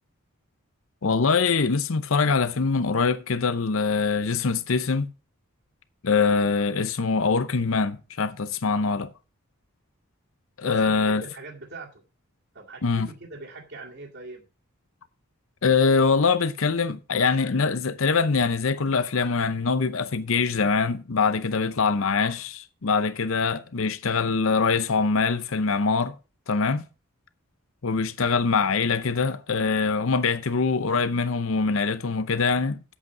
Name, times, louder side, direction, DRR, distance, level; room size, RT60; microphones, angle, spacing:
voice 1, 1.0-5.1 6.0-9.1 10.6-11.2 12.8-13.1 15.6-26.2 26.5-26.9 27.8-32.8, left 4 dB, 65° left, 0.7 m, -23 dB
voice 2, 10.6-12.0 12.5-14.4, right 2 dB, 50° right, 2.1 m, -41 dB
8.2 x 8.1 x 5.9 m
head